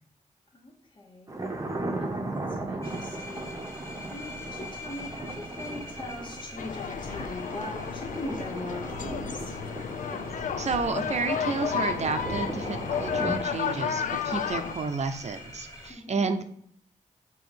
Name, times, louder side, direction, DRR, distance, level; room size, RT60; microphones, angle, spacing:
voice 1, 0.5-1.4 2.0-3.6 4.1-9.5 15.9-16.4, left 1 dB, 35° left, 0 dB, 1.5 m, -40 dB
Thunder, 1.3-13.3, right 2 dB, 25° right, 1.0 m, -37 dB
sound 1, 2.8-15.9, left 1 dB, 20° left, 1.7 m, -45 dB
sound 2, 6.6-14.7, left 7 dB, 75° left, 0.5 m, -32 dB
voice 2, 10.6-16.4, right 4 dB, 55° right, 7 dB, 0.6 m, -31 dB
7.8 x 3.0 x 5.1 m, 0.65 s
wide cardioid pair, 90°, 13 cm